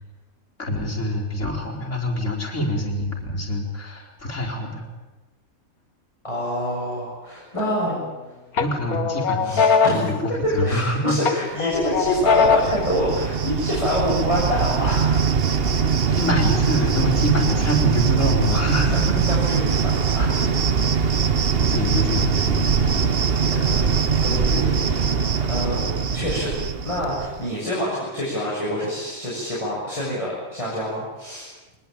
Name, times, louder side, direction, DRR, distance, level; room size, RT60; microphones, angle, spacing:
voice 1, 0.6-4.8 8.6-11.2 16.1-19.2 21.6-22.9 23.5-23.6, left 1 dB, 55° left, -1 dB, 4.8 m, -25 dB
voice 2, 6.2-8.0 9.4-15.1 19.3-20.4 20.7-21.2 23.5-25.1 25.4-25.8 26.1-26.5 26.8-31.5, equal, 20° left, -6 dB, 6.6 m, -27 dB
sound 1, 7.6-8.2 8.6-10.9 11.2-12.9, left 5 dB, 80° left, 1.9 m, -21 dB
Cricket, 11.7-27.4, right 6 dB, 45° right, 1.2 m, -22 dB
23.5 x 20.0 x 9.1 m, 1.2 s
omnidirectional pair, 1.5 m